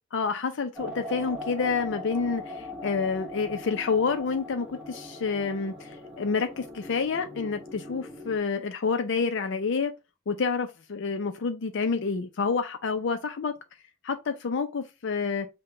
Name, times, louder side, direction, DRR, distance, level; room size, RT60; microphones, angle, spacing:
voice 1, 0.1-9.9 10.3-13.5 14.0-15.5, left 5 dB, 65° left, 0.5 m, -28 dB
sound 1, 0.7-8.4, left 2 dB, 5° right, 1.7 m, -40 dB
5.6 x 2.2 x 3.6 m
head